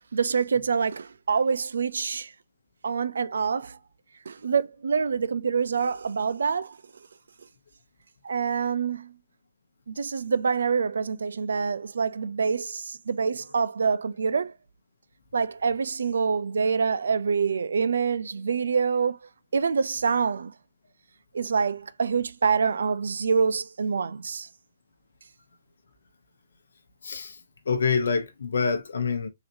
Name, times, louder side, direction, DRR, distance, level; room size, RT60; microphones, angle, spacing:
voice 1, 0.1-2.3 2.8-3.8 4.3-6.8 8.2-9.1 9.9-14.5 15.3-19.2 19.5-20.5 21.3-24.5, right 5 dB, 85° right, 0.4 m, -26 dB
voice 2, 27.0-27.4 27.7-29.3, left 5 dB, 85° left, 0.8 m, -26 dB
4.0 x 2.9 x 2.5 m
hypercardioid pair, 150°, 0 cm